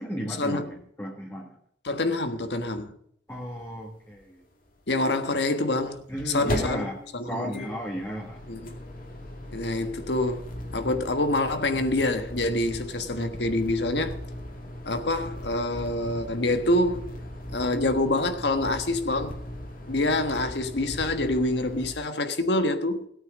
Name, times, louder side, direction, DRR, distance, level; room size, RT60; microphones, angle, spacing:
voice 1, 0.0-1.6 3.3-4.4 6.1-8.4, equal, 10° left, 1.5 m, -34 dB
voice 2, 1.8-2.9 4.9-6.9 7.1-7.7 8.5-8.8 9.5-14.2 14.8-17.1 17.5-19.4 19.9-23.1, left 2 dB, 75° left, 1.4 m, -26 dB
sound 1, 3.4-3.5 3.6-3.7 5.6-21.9, left 1 dB, 50° left, 2.3 m, -38 dB
17.0 x 9.0 x 5.1 m
head